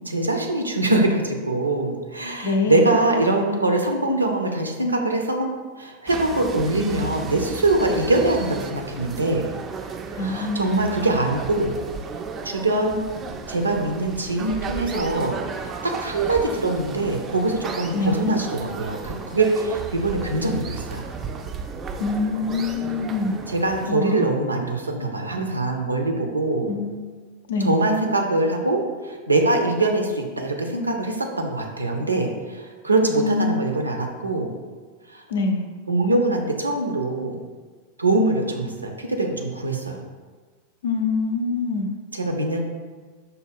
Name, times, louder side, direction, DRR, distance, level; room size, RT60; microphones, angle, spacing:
voice 1, 0.1-9.5 10.2-11.8 12.4-13.0 13.5-15.4 15.8-21.1 23.5-26.7 27.6-34.5 35.1-35.2 35.9-37.4 38.0-40.0 42.1-42.6, right 2 dB, 80° right, 2 dB, 0.5 m, -23 dB
voice 2, 2.4-2.9 10.1-10.8 17.9-18.3 22.0-23.4 23.9-24.4 26.7-27.0 27.5-27.8 33.2-33.8 35.3-35.7 40.8-41.9, left 3 dB, 65° left, 5 dB, 0.4 m, -25 dB
sound 1, 6.1-23.9, right 5 dB, 25° right, 0.3 m, -34 dB
5.5 x 2.2 x 3.5 m, 1.4 s
figure-of-eight pair, 90°, 0 cm